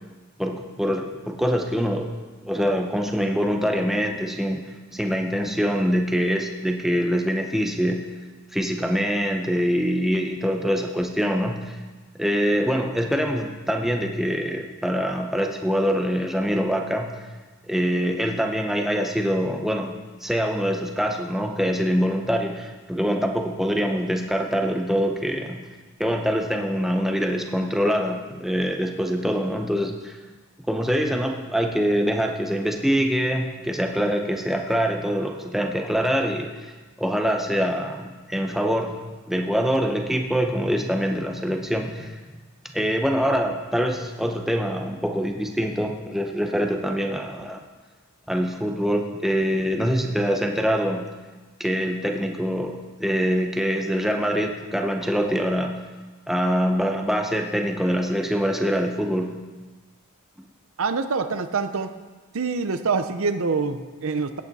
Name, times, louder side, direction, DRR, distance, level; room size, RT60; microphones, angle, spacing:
voice 1, 0.4-2.1 2.4-4.6 4.9-8.1 8.5-11.8 12.1-17.1 17.7-25.6 26.0-30.2 30.7-36.7 37.0-39.0 39.3-42.2 42.7-47.6 48.3-51.1 51.6-55.8 56.3-59.4, equal, ahead, 3 dB, 0.7 m, -24 dB
voice 2, 60.8-61.9 62.3-64.4, right 4 dB, 65° right, 10 dB, 0.6 m, -25 dB
16.0 x 8.5 x 4.1 m, 1.3 s
head